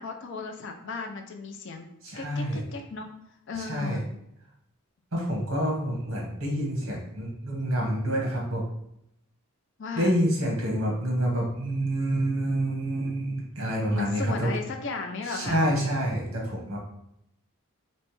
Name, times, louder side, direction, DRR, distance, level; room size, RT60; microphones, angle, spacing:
voice 1, 0.0-1.9 2.2-3.1 3.5-4.0 9.8-10.1 13.9-15.6, left 4 dB, 55° left, 5 dB, 0.4 m, -35 dB
voice 2, 2.0-2.6 3.7-4.0 5.1-8.6 9.9-14.5 15.2-16.8, right 1 dB, 65° right, -2 dB, 1.2 m, -27 dB
3.2 x 3.0 x 3.1 m, 0.78 s
head